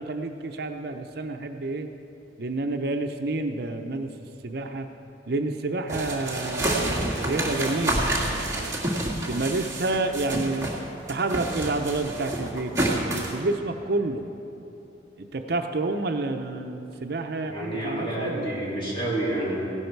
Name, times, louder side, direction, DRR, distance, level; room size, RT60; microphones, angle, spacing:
voice 1, 0.0-1.9 2.4-4.1 4.4-4.9 5.3-8.7 9.3-10.7 11.1-14.3 15.2-18.4, right 2 dB, 55° right, 5 dB, 0.6 m, -29 dB
sound 1, 5.9-10.8 11.1-13.4, right 1 dB, 15° right, 1.9 m, -28 dB
voice 2, 17.4-19.7, right 1 dB, 25° left, -7 dB, 3.6 m, -29 dB
16.5 x 12.0 x 4.6 m, 2.9 s
head